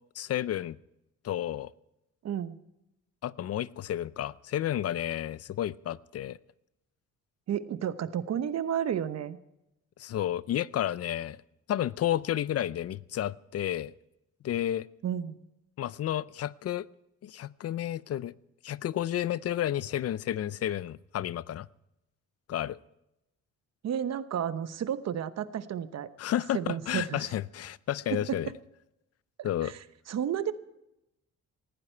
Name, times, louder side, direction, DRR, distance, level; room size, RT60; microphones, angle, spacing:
voice 1, 0.2-0.8 1.2-1.7 3.2-6.4 10.0-11.4 11.7-13.9 14.4-14.9 15.8-16.9 17.2-18.3 18.6-21.7 22.5-22.8 26.2-28.5 29.4-29.7, left 11 dB, 55° left, 0.5 m, -31 dB
voice 2, 2.2-2.6 7.5-9.4 15.0-15.4 23.8-26.1 26.5-27.3 28.1-28.4 29.4-29.7 30.1-30.5, right 9 dB, 60° right, 1.0 m, -32 dB
19.5 x 14.5 x 4.5 m
cardioid pair, 90°, 30 cm